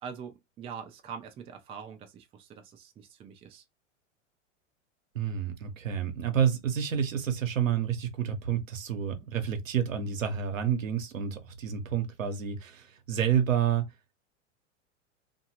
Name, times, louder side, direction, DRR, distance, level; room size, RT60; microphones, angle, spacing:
voice 1, 0.0-3.6, right 7 dB, 15° right, 0.4 m, -44 dB
voice 2, 5.1-13.9, right 8 dB, 85° right, 0.9 m, -29 dB
2.7 x 2.5 x 2.8 m
hypercardioid pair, 105°, 38 cm